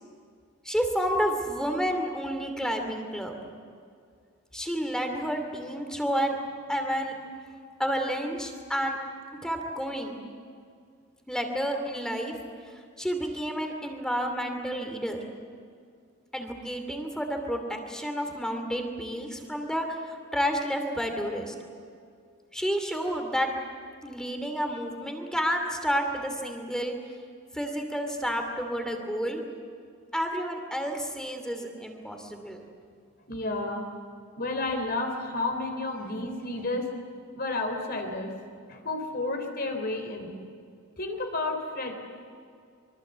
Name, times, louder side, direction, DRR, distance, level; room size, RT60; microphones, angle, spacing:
voice 1, 0.6-3.4 4.5-6.4 6.7-7.1 7.4-9.0 9.4-10.2 11.3-12.3 13.0-15.2 16.3-21.5 22.5-23.5 24.0-26.9 27.5-29.4 30.1-32.6, equal, 5° left, 4 dB, 2.8 m, -30 dB
voice 2, 33.3-33.9 34.4-36.9 37.3-38.3 38.7-40.4 41.0-41.9, left 2 dB, 45° left, 4 dB, 3.6 m, -31 dB
25.5 x 23.5 x 8.2 m, 2.2 s
head